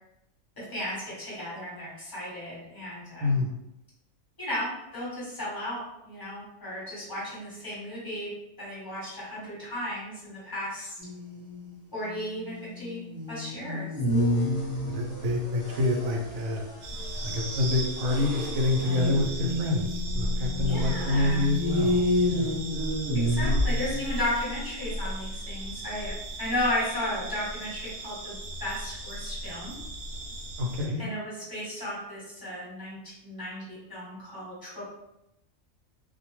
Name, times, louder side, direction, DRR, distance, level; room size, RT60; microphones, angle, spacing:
voice 1, 0.6-3.4 4.4-8.3 8.6-11.1 11.9-13.0 13.3-13.9 20.6-21.5 23.2-29.8 31.0-34.8, left 1 dB, 15° left, -8 dB, 1.1 m, -34 dB
voice 2, 3.2-3.5 14.9-16.6 17.2-22.6 30.6-31.0, left 2 dB, 85° right, 1 dB, 1.0 m, -27 dB
sound 1, 11.0-11.8 12.0-15.2 18.8-24.1, left 1 dB, 20° right, 0.4 m, -29 dB
sound 2, 14.1-19.1, equal, 40° left, 1.0 m, -43 dB
sound 3, 16.8-30.9, equal, 65° right, 0.8 m, -34 dB
2.5 x 2.1 x 2.9 m, 0.88 s
omnidirectional pair, 1.4 m